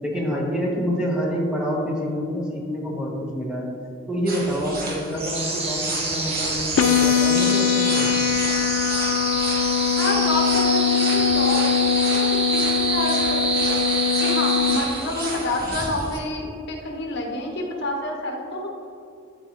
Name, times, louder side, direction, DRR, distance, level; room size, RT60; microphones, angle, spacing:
voice 1, 0.0-3.7 4.1-8.1, equal, 5° right, -3 dB, 1.3 m, -27 dB
sound 1, 4.3-16.2, right 2 dB, 50° right, 1.5 m, -34 dB
sound 2, 5.1-15.4, right 2 dB, 30° right, 1.2 m, -27 dB
sound 3, 6.8-14.8, left 8 dB, 85° left, 0.4 m, -22 dB
voice 2, 10.0-13.8 14.2-18.7, left 2 dB, 60° left, 0 dB, 1.4 m, -28 dB
13.0 x 4.4 x 3.1 m, 2.6 s
head